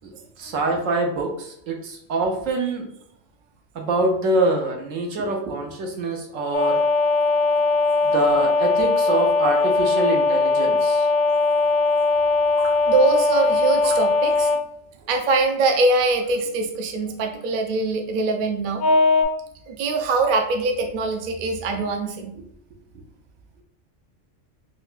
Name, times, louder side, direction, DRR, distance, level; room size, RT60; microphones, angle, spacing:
voice 1, 0.4-2.9 3.7-6.9 8.0-11.1, right 2 dB, 85° right, 1 dB, 1.1 m, -25 dB
sound 1, 6.5-14.6 18.8-19.2, left 3 dB, 60° left, 0.6 m, -20 dB
voice 2, 12.6-14.5 15.0-18.8 19.7-22.3, right 3 dB, 60° right, 4 dB, 0.5 m, -23 dB
4.5 x 2.2 x 2.4 m, 0.70 s
omnidirectional pair, 1.3 m